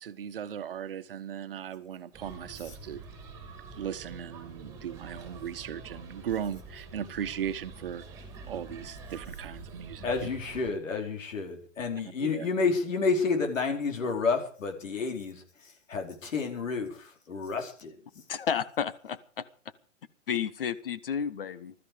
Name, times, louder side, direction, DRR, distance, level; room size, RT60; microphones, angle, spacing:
voice 1, 0.0-3.0 3.7-10.1 12.2-12.5, right 9 dB, 45° right, 1.4 m, -37 dB
sound 1, 2.1-10.7, right 3 dB, 10° right, 2.7 m, -46 dB
voice 2, 10.0-15.4 15.9-17.9, left 4 dB, 80° left, 4.7 m, -30 dB
voice 3, 18.3-19.4 20.3-21.7, left 7 dB, 45° left, 1.3 m, -31 dB
20.5 x 13.5 x 5.1 m
hypercardioid pair, 180°, 38 cm